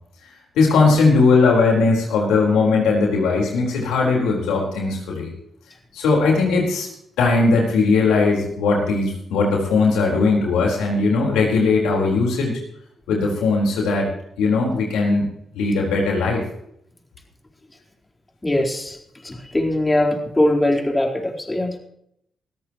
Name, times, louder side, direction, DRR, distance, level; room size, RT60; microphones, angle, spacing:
voice 1, 0.5-5.3 5.9-6.9 7.2-12.5 13.1-14.1 14.4-15.2 15.5-16.4, left 3 dB, 80° left, -1 dB, 4.5 m, -18 dB
voice 2, 18.4-19.0 19.2-21.8, left 1 dB, 20° left, 0 dB, 4.2 m, -21 dB
21.5 x 13.5 x 3.1 m, 0.72 s
hypercardioid pair, 45°, 0 cm